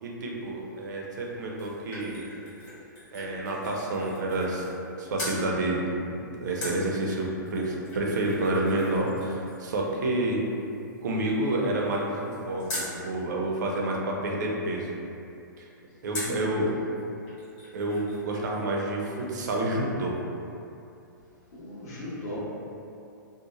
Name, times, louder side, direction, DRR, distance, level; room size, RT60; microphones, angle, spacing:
voice 1, 0.0-2.2 3.1-4.7 5.0-5.9 6.4-10.4 11.0-15.0 15.6-15.7 16.0-16.7 17.7-20.2, right 1 dB, 60° right, -1 dB, 0.5 m, -29 dB
sound 1, 1.2-4.9 5.1-5.4 6.6-12.9 16.1-16.5 17.0-17.1 17.3-18.3 18.5-18.6, left 1 dB, 35° left, 1.4 m, -41 dB
voice 2, 16.3-16.7 21.5-22.4, equal, 50° left, -8 dB, 1.0 m, -37 dB
2.8 x 2.1 x 3.0 m, 2.7 s
hypercardioid pair, 115°, 11 cm